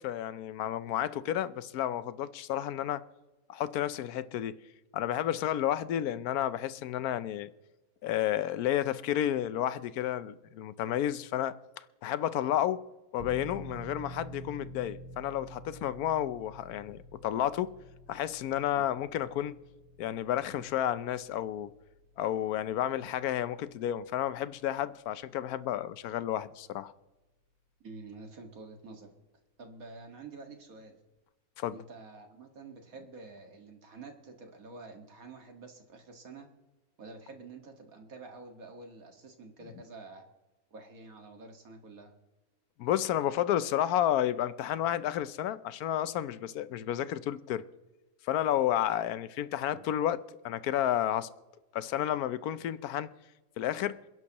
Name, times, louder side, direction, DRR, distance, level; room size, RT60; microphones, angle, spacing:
voice 1, 0.0-3.0 3.5-4.6 4.9-7.5 8.0-12.8 13.1-17.7 18.1-19.6 20.0-21.7 22.2-26.9 31.6-31.7 42.8-47.6 48.2-51.3 51.7-53.1 53.6-54.0, left 11 dB, 90° left, 1.1 m, -31 dB
sound 1, 13.2-25.7 26.1-26.2, right 1 dB, 50° right, 2.1 m, -49 dB
voice 2, 27.8-29.1 29.6-31.0 31.7-36.5 37.0-40.2 40.7-42.1 49.7-49.8, right 3 dB, 70° right, 2.2 m, -48 dB
28.0 x 10.5 x 2.9 m
omnidirectional pair, 1.5 m